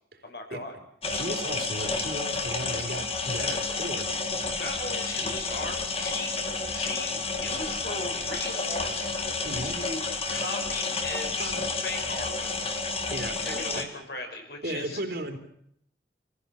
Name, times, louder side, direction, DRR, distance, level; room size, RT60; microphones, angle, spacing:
voice 1, 0.2-0.7 4.0-4.2 4.6-9.0 9.6-11.6 11.8-12.8 13.4-15.0, left 2 dB, 65° left, 3 dB, 5.6 m, -37 dB
sound 1, 1.0-13.8, left 3 dB, 35° left, 2.2 m, -30 dB
voice 2, 1.1-4.1 9.4-9.8 11.4-11.6 13.1-13.8 14.6-15.4, right 1 dB, 60° right, 5 dB, 3.6 m, -35 dB
27.5 x 15.5 x 7.2 m, 0.72 s
head